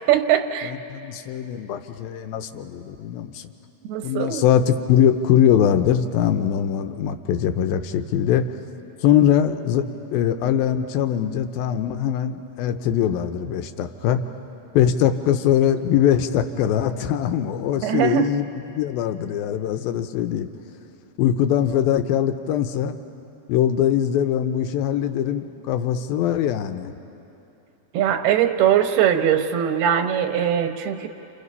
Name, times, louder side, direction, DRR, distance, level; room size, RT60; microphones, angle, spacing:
voice 1, 0.1-0.7 3.9-4.4 17.8-18.3 27.9-31.1, right 10 dB, 90° right, 7 dB, 3.1 m, -21 dB
voice 2, 0.6-3.5 4.0-8.5 9.0-14.2 14.7-18.5 18.8-20.5 21.2-22.9 23.5-26.9, left 10 dB, 80° left, 8 dB, 2.5 m, -22 dB
29.5 x 28.0 x 5.5 m, 2.9 s
omnidirectional pair, 4.4 m